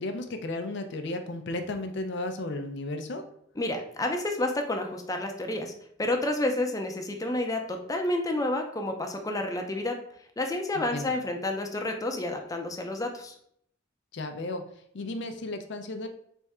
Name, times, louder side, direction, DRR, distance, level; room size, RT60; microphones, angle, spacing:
voice 1, 0.0-3.2 10.7-11.1 14.1-14.6 14.9-16.1, left 2 dB, 60° left, 6 dB, 0.5 m, -34 dB
voice 2, 3.6-5.7 6.0-10.0 10.4-13.3, left 1 dB, 20° left, 3 dB, 0.6 m, -30 dB
3.5 x 3.4 x 4.2 m, 0.68 s
head